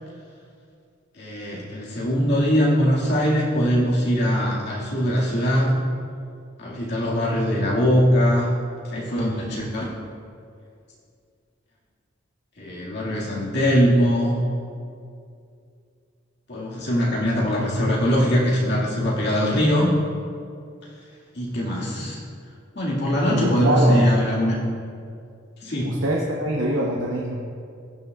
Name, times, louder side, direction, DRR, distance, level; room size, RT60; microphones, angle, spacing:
voice 1, 1.2-5.8 6.6-8.5 8.9-9.9 12.6-14.4 16.5-19.9 21.4-22.2 22.8-24.6 25.6-26.0, equal, 60° left, -5 dB, 1.9 m, -21 dB
voice 2, 23.3-24.1 25.8-27.4, right 1 dB, 70° right, -2 dB, 0.8 m, -24 dB
18.5 x 6.4 x 2.3 m, 2.3 s
head